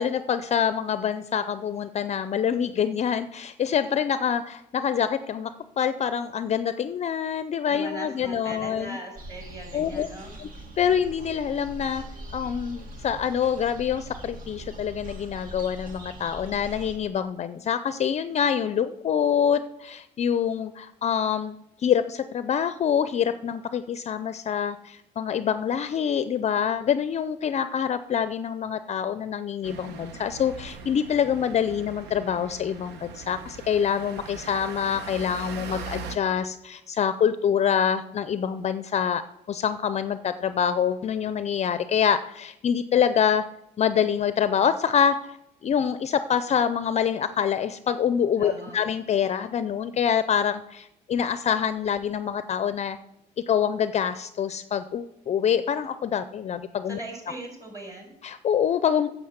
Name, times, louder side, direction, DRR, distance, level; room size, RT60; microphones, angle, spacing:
voice 1, 0.0-9.0 9.7-10.1 10.4-10.5 10.8-12.0 12.3-39.2 39.5-43.4 43.8-45.4 45.6-53.0 53.5-57.0 58.2-59.1, left 8 dB, 40° left, 12 dB, 0.5 m, -26 dB
voice 2, 7.7-10.3 48.4-48.8 56.9-58.1, right 1 dB, 20° right, 0 dB, 5.1 m, -39 dB
sound 1, 9.2-17.0, right 1 dB, 55° right, 2.1 m, -42 dB
sound 2, 29.6-36.2, right 5 dB, 85° right, 1.0 m, -40 dB
9.4 x 7.1 x 7.9 m, 0.84 s
cardioid pair, 110°, 17 cm